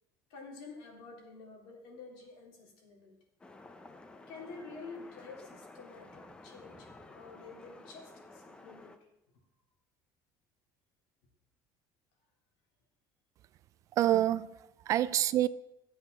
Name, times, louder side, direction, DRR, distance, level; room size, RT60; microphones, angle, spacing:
voice 1, 0.3-3.1 4.3-9.0, left 4 dB, 80° left, 3.8 m, -49 dB
sound 1, 3.4-9.0, left 2 dB, 10° left, 0.7 m, -53 dB
voice 2, 13.9-15.5, right 12 dB, 40° right, 0.4 m, -27 dB
15.0 x 7.7 x 5.9 m
cardioid pair, 175°, 8 cm